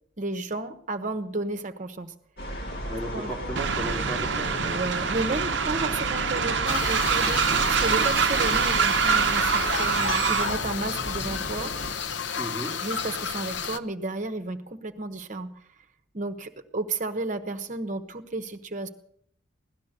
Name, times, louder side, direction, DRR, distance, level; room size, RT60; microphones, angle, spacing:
voice 1, 0.2-2.1 3.1-3.3 4.6-11.7 12.8-15.5 16.1-18.9, right 2 dB, 40° right, 8 dB, 1.0 m, -32 dB
sound 1, 2.4-11.9, equal, 50° left, 3.1 m, -35 dB
voice 2, 2.9-4.7 12.4-12.7, right 1 dB, 10° left, -1 dB, 2.8 m, -35 dB
Train, 3.6-10.6, right 6 dB, 60° right, 0.7 m, -25 dB
sound 2, 6.7-13.8, left 6 dB, 65° left, 0.6 m, -31 dB
17.0 x 11.5 x 6.6 m, 0.66 s
head